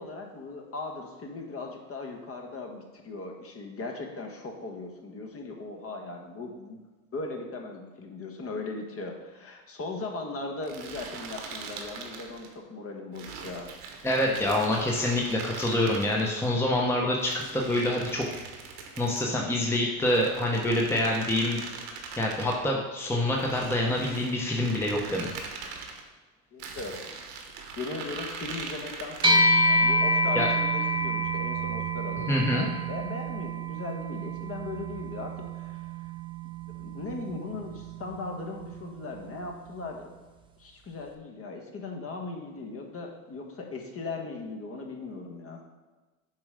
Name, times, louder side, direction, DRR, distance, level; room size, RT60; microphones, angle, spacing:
voice 1, 0.0-6.8 7.1-13.7 14.3-14.4 26.5-27.0 27.8-35.8 36.6-40.1 40.6-45.6, left 3 dB, 30° left, 2 dB, 1.2 m, -38 dB
sound 1, 10.6-12.5 13.1-16.5 17.2-19.3 19.9-22.6 23.3-26.0 26.6-29.6, right 5 dB, 60° right, 1.3 m, -41 dB
voice 2, 14.0-18.3 19.0-21.6 22.2-25.3 30.3-30.5 32.3-32.7, left 1 dB, 5° left, -1 dB, 0.9 m, -26 dB
sound 2, 29.2-38.8, right 1 dB, 10° right, 0.5 m, -28 dB
7.2 x 3.1 x 5.0 m, 1.2 s
hypercardioid pair, 90°, 43 cm